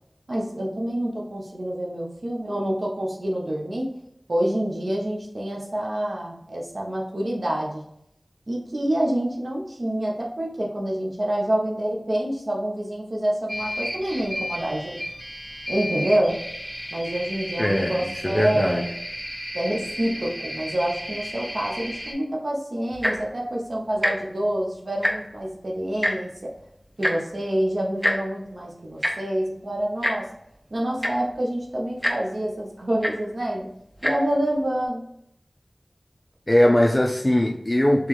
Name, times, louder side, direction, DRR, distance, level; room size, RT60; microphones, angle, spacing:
voice 1, 0.3-3.9 4.3-7.8 8.5-15.0 15.7-16.4 16.9-18.9 19.5-26.5 27.0-30.3 30.7-33.7 34.0-35.1, right 1 dB, 70° right, -2 dB, 0.6 m, -27 dB
sound 1, 13.5-22.1, equal, 30° right, 1.0 m, -34 dB
voice 2, 17.6-18.8 36.5-38.1, left 1 dB, 30° left, 0 dB, 0.4 m, -20 dB
Tick-tock, 22.9-23.3 23.9-24.1 24.4-24.6 24.9-25.4 26.0-26.1 27.0-27.1 28.0-28.2 29.0-29.1 30.0-30.1 30.7-30.8 31.0-31.3 32.0-32.1 33.0-33.1 33.9-34.1 34.8-34.9, equal, 5° right, 0.8 m, -24 dB
3.7 x 3.0 x 3.0 m, 0.76 s
wide cardioid pair, 50°, 0 cm